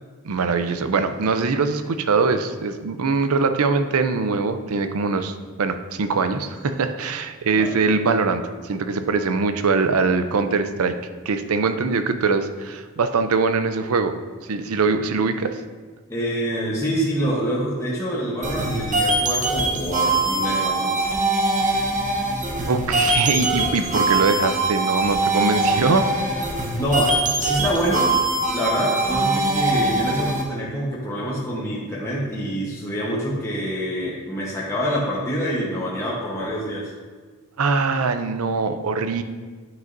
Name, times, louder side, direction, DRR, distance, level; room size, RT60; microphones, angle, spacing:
voice 1, 0.2-11.0 11.3-14.1 14.5-15.6 22.7-26.1 37.6-39.2, right 4 dB, 75° right, 9 dB, 0.5 m, -22 dB
voice 2, 16.1-21.1 26.8-28.2 28.5-36.9, equal, 15° left, -6 dB, 1.0 m, -26 dB
sound 1, 18.4-30.4, right 2 dB, 35° right, 0.9 m, -22 dB
10.0 x 6.2 x 2.6 m, 1.5 s
head